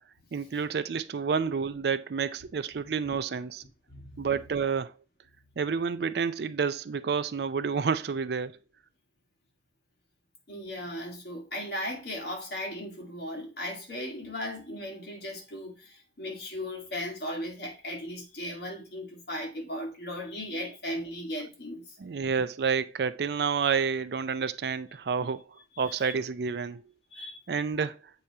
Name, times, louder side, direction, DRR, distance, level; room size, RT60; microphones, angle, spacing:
voice 1, 0.3-3.6 4.2-4.9 5.6-8.6 20.5-20.8 22.0-26.8 27.5-28.0, right 6 dB, 65° right, 0.4 m, -29 dB
voice 2, 10.5-22.0 25.2-25.3 25.8-26.1 27.1-27.4, left 1 dB, 60° left, 1.9 m, -37 dB
7.7 x 2.9 x 4.7 m
head